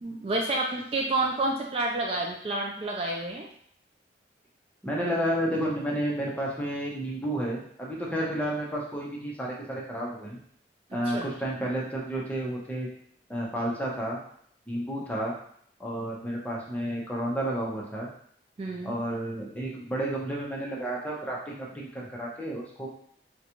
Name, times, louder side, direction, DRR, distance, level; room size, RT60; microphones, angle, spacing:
voice 1, 0.0-3.5 8.1-8.2 11.1-11.3 18.6-19.0, right 2 dB, 35° right, -1 dB, 0.3 m, -29 dB
voice 2, 4.8-10.4 10.9-12.9 13.3-14.2 14.7-15.3 15.8-18.1 18.8-22.9, right 1 dB, 10° left, -3 dB, 0.7 m, -31 dB
3.8 x 2.2 x 2.9 m, 0.64 s
head